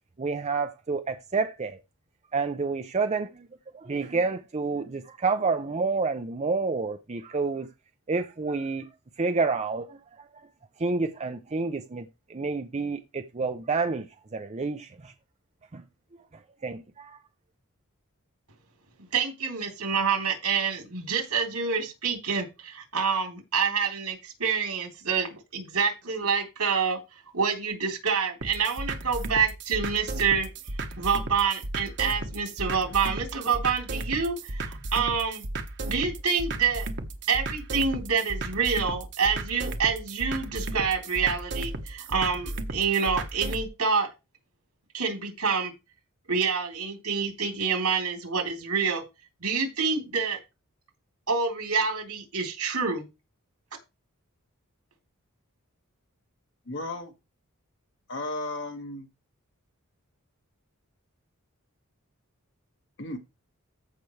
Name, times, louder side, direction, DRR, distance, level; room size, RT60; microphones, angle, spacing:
voice 1, 0.2-1.8 2.3-3.5 3.7-7.7 8.1-8.9 9.2-10.0 10.8-14.1 14.3-15.1 15.7-15.8 16.6-17.2, right 4 dB, 30° right, 0.6 m, -29 dB
voice 2, 19.1-27.0 27.3-30.5 31.0-35.4 35.8-36.9 37.3-44.1 44.9-45.7 46.3-49.0 49.4-50.4 51.3-53.1, right 5 dB, 85° right, 3.5 m, -27 dB
sound 1, 28.4-43.7, right 2 dB, 55° right, 1.2 m, -35 dB
voice 3, 56.7-57.1 58.1-59.1 63.0-63.2, left 2 dB, 60° left, 1.9 m, -34 dB
14.5 x 5.9 x 3.3 m
head